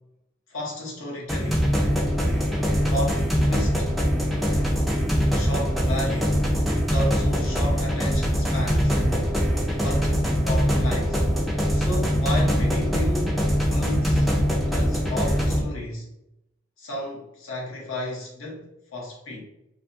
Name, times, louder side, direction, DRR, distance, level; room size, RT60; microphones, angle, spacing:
voice 1, 0.5-1.7 2.9-3.9 5.3-6.4 6.8-9.2 9.8-11.2 11.7-14.3 14.7-16.1 16.8-19.4, left 1 dB, 70° left, 0.8 m, -33 dB
sound 1, 1.3-15.6, equal, ahead, 0.3 m, -22 dB
2.6 x 2.3 x 2.5 m
head